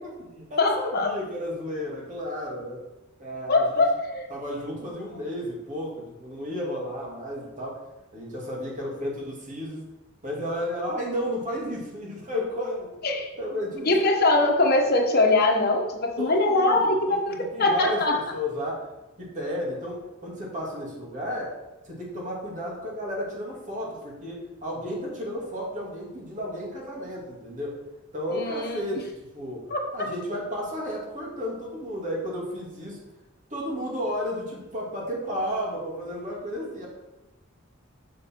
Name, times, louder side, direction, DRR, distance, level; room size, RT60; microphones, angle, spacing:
voice 1, 0.0-2.8 3.2-3.8 4.3-7.8 8.1-9.8 10.2-12.9 13.4-13.9 16.2-18.9 19.2-21.5 21.8-27.7 28.1-29.7 29.9-33.0 33.5-36.9, equal, 40° right, -3 dB, 2.3 m, -33 dB
voice 2, 0.6-1.1 3.5-4.3 13.0-13.3 13.8-18.2 28.3-28.9 29.7-29.8, left 2 dB, 50° left, 1 dB, 1.3 m, -22 dB
6.9 x 6.4 x 4.5 m, 1.0 s
head